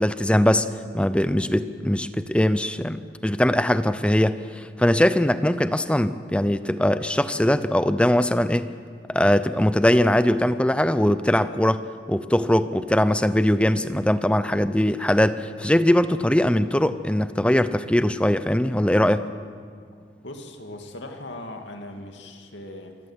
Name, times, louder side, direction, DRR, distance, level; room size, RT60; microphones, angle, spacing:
voice 1, 0.0-8.7 9.1-11.8 12.1-19.3, left 1 dB, 5° left, 12 dB, 0.6 m, -21 dB
voice 2, 20.2-23.0, left 1 dB, 70° left, 4 dB, 2.5 m, -39 dB
27.0 x 14.5 x 8.2 m, 2.1 s
head